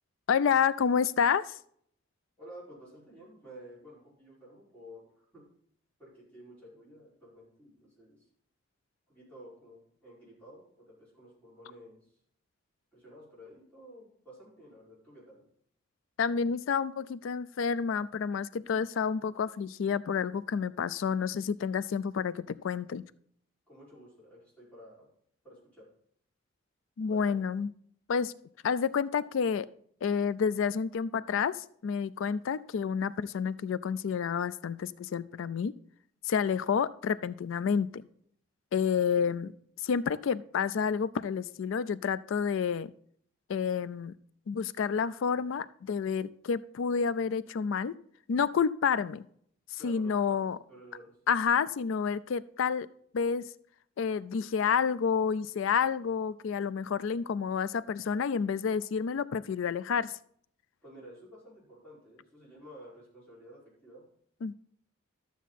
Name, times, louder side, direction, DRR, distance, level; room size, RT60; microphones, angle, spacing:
voice 1, 0.3-1.6 16.2-23.0 27.0-27.7 28.1-28.3 28.6-29.7 30.0-35.7 36.2-38.0 38.7-39.5 39.8-42.9 43.5-44.1 44.5-47.9 48.3-49.3 49.8-50.6 51.3-52.9 53.1-53.5 54.0-60.2 64.4-64.5, left 6 dB, 75° left, 17 dB, 0.4 m, -29 dB
voice 2, 2.4-5.4 6.0-8.3 9.1-12.1 12.9-15.4 23.7-25.1 25.4-25.9 27.1-27.4 38.9-39.4 49.8-51.1 60.8-64.0, equal, 5° left, -9 dB, 5.1 m, -52 dB
12.0 x 7.2 x 4.1 m, 0.64 s
head